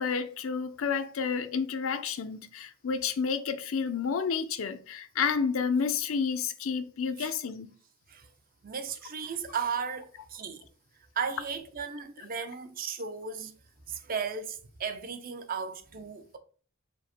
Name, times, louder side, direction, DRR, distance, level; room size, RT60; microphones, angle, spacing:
voice 1, 0.0-7.7, left 6 dB, 80° left, 0.5 m, -30 dB
voice 2, 8.6-10.6 11.2-13.5 13.9-16.4, right 6 dB, 45° right, 0.6 m, -35 dB
5.1 x 2.1 x 4.3 m
head